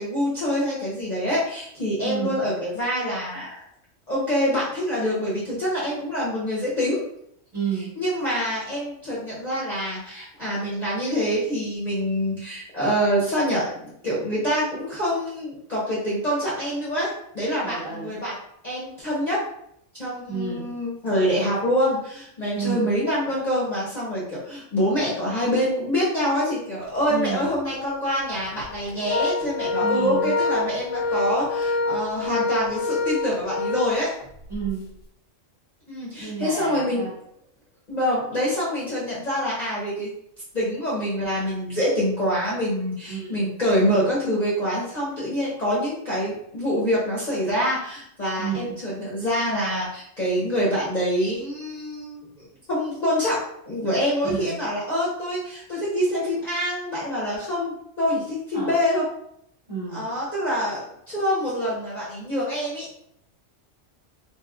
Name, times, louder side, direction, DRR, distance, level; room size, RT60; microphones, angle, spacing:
voice 1, 0.0-3.6 4.1-7.0 8.0-18.3 18.6-19.4 19.9-34.1 35.9-37.1 37.9-40.1 40.5-59.0 59.9-62.9, equal, 40° left, -8 dB, 0.8 m, -25 dB
voice 2, 2.0-2.4 7.5-8.0 17.6-18.1 20.3-20.7 22.6-22.9 27.1-27.5 29.8-30.3 34.5-34.9 36.2-37.1 43.1-43.5 48.4-48.8 54.2-54.6 58.5-58.7 59.7-60.1, right 5 dB, 25° right, -8 dB, 1.4 m, -30 dB
Organ, 26.8-27.0 27.4-27.5 28.4-34.7, left 3 dB, 80° left, 1.0 m, -26 dB
3.0 x 2.9 x 2.4 m, 0.72 s
omnidirectional pair, 1.3 m